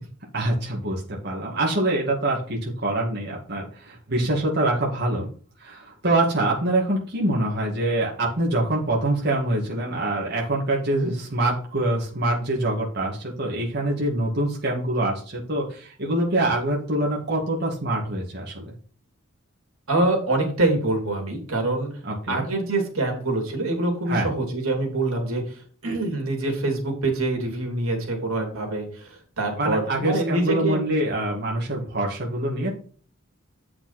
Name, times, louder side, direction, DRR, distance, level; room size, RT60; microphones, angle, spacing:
voice 1, 0.3-5.3 5.6-18.7 22.0-22.4 24.1-24.3 29.6-32.7, right 1 dB, 50° right, -3 dB, 2.2 m, -25 dB
voice 2, 19.9-21.9 22.3-30.8, right 2 dB, 90° right, 2 dB, 3.2 m, -25 dB
8.5 x 6.0 x 4.3 m, 0.44 s
head